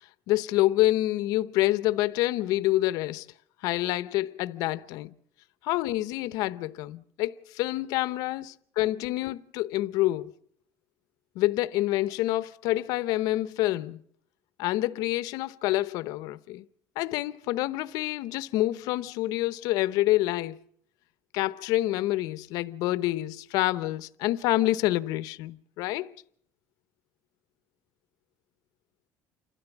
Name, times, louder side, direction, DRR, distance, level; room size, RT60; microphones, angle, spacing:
voice 1, 0.3-3.3 3.6-5.1 5.6-10.3 11.3-14.0 14.6-16.7 17.0-20.6 21.3-26.1, left 16 dB, 80° left, 0.8 m, -27 dB
29.0 x 13.5 x 7.2 m
cardioid pair, 170°, 6 cm